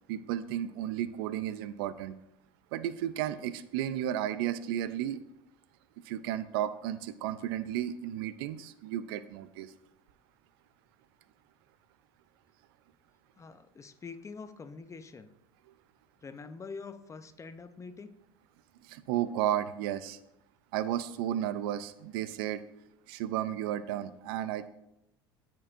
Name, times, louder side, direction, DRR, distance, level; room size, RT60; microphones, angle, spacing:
voice 1, 0.1-2.2 2.7-5.2 6.0-9.7 18.8-20.2 20.7-22.6 23.1-24.7, right 11 dB, 75° right, 14 dB, 0.5 m, -33 dB
voice 2, 13.4-15.3 16.2-18.1, left 4 dB, 25° left, 11 dB, 0.6 m, -45 dB
13.0 x 4.6 x 2.5 m, 0.85 s
hypercardioid pair, 75°, 13 cm